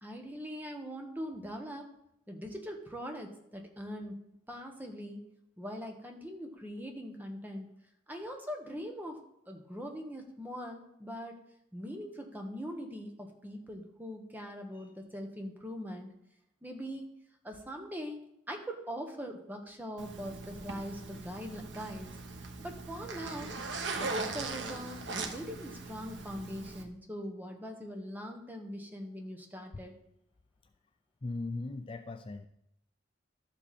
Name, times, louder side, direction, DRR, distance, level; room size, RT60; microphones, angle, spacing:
voice 1, 0.0-1.9 2.3-4.2 4.5-5.2 5.6-7.7 8.1-9.2 9.5-11.4 11.7-16.1 16.6-17.1 17.4-18.2 18.5-22.1 22.6-23.5 24.0-29.9, equal, 10° right, 3 dB, 1.3 m, -42 dB
Zipper (clothing), 20.0-26.8, right 3 dB, 85° right, 1.2 m, -40 dB
voice 2, 31.2-32.5, left 2 dB, 30° left, 8 dB, 0.4 m, -38 dB
12.5 x 7.5 x 4.3 m, 0.82 s
head